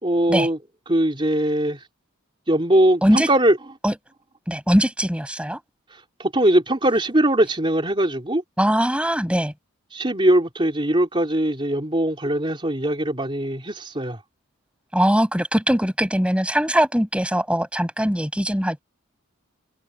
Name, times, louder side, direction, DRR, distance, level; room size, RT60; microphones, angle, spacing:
voice 1, 0.0-0.6 0.9-1.9 2.5-3.6 5.9-8.4 9.9-14.2, right 1 dB, 25° right, 3.2 m, -21 dB
voice 2, 4.5-5.6 8.6-9.5 14.9-18.8, equal, 5° right, 6.5 m, -21 dB
open air
head